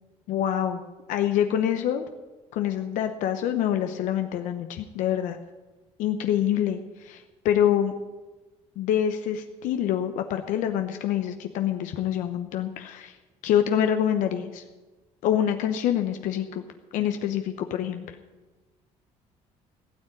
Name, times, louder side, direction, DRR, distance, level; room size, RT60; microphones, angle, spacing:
voice 1, 0.3-2.0 2.5-5.4 6.0-7.9 8.8-13.2 13.4-14.6 15.2-16.6 16.9-18.2, left 10 dB, 80° left, 6 dB, 0.9 m, -26 dB
16.5 x 6.5 x 9.2 m, 1.2 s
cardioid pair, 110°, 13 cm